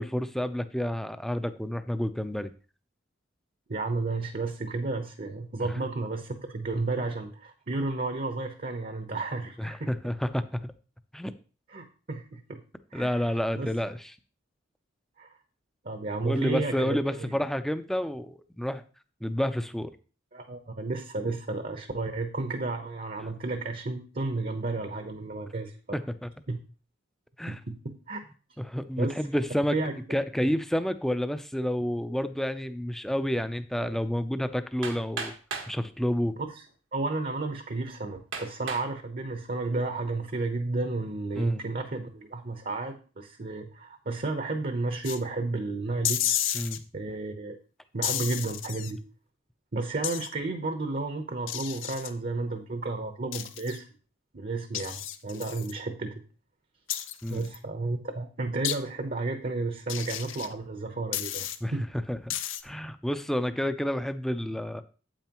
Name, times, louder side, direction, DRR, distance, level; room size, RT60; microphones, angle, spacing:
voice 1, 0.0-2.5 5.6-5.7 9.6-10.7 11.1-11.3 12.9-14.0 16.2-18.8 19.2-19.9 25.9-26.3 27.4-27.6 28.6-29.8 30.1-35.3 35.7-36.4 41.4-41.6 46.5-46.8 57.2-57.4 61.6-61.7 62.1-62.3 62.6-64.8, equal, ahead, 10 dB, 0.5 m, -29 dB
voice 2, 3.7-9.9 11.7-12.6 12.9-13.7 15.2-15.3 15.8-17.4 20.3-25.8 26.5-26.6 27.5-27.8 28.1-28.2 29.0-29.1 29.7-29.9 30.4-30.5 36.6-36.7 36.9-46.2 46.9-47.5 47.9-49.0 49.7-53.9 54.3-56.2 57.3-61.9, right 3 dB, 50° right, 6 dB, 0.9 m, -32 dB
Hammer, 34.8-35.8 36.7-36.8 37.4-37.5 38.3-38.9 39.5-39.9, right 4 dB, 90° right, 1.6 m, -36 dB
sound 1, 45.0-45.2 46.0-46.8 48.0-48.9 50.0-50.3 51.5-52.1 53.3-53.8 54.7-55.7 56.9-57.6 58.6-58.8 59.9-60.5 61.1-61.6 62.3-62.6, left 11 dB, 85° left, 0.7 m, -32 dB
8.9 x 8.3 x 3.0 m, 0.36 s
head